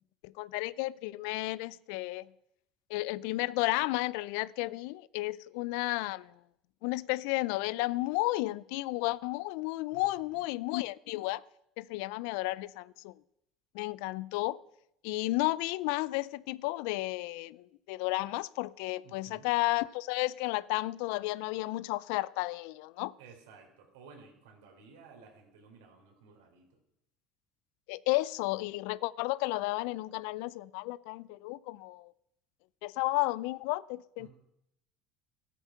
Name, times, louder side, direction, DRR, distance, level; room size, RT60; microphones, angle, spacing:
voice 1, 0.2-2.3 2.9-6.3 6.8-11.4 11.8-13.1 13.7-14.6 15.0-23.1 27.9-32.1 32.8-34.3, left 20 dB, 80° left, 0.4 m, -33 dB
voice 2, 9.9-10.5 19.0-19.5 23.2-26.8 34.2-34.3, right 5 dB, 90° right, 4.0 m, -55 dB
14.0 x 12.5 x 5.7 m
supercardioid pair, 95°, 0 cm